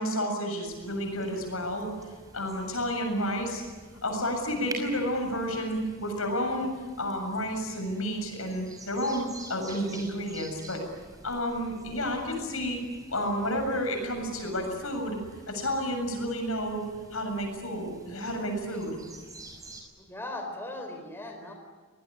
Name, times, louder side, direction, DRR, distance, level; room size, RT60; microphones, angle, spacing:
voice 1, 0.0-1.9 2.3-3.6 4.0-6.7 7.0-10.8 11.2-12.8 13.1-15.2 15.5-16.8 17.1-19.0, equal, 85° left, 5 dB, 7.3 m, -31 dB
sound 1, 0.7-19.8, right 2 dB, 15° right, 6.0 m, -48 dB
voice 2, 20.0-21.5, left 1 dB, 10° left, 3 dB, 4.7 m, -38 dB
26.0 x 20.5 x 10.0 m, 1.4 s
head